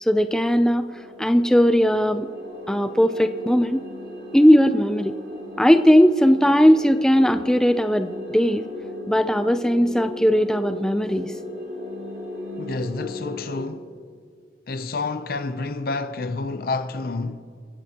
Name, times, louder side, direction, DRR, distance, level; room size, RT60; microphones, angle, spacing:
voice 1, 0.0-0.9 1.2-2.3 2.7-3.9 4.3-5.1 5.6-8.6 9.1-11.3, equal, 5° left, 0.4 m, -18 dB
sound 1, 0.9-13.6, left 1 dB, 65° right, 2.5 m, -37 dB
voice 2, 12.6-13.9 14.7-17.5, left 3 dB, 55° left, 0.6 m, -29 dB
27.0 x 15.5 x 2.9 m
head